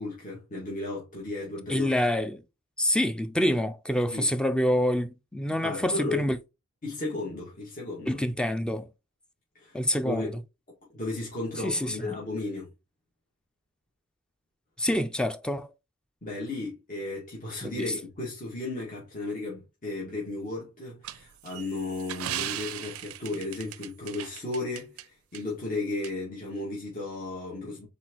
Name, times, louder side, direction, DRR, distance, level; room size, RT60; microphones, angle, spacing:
voice 1, 0.0-1.9 4.1-4.3 5.6-6.2 6.8-8.2 9.5-9.8 10.0-10.4 10.9-12.7 16.2-27.9, left 2 dB, 40° left, 1.8 m, -34 dB
voice 2, 1.7-2.4 2.8-6.4 8.1-8.9 9.7-10.3 11.6-12.2 14.8-15.7 17.6-17.9, left 1 dB, 5° left, 0.4 m, -27 dB
sound 1, 21.0-25.0 25.3-25.4 26.0-26.1, right 13 dB, 80° right, 0.4 m, -37 dB
4.4 x 4.1 x 3.0 m
head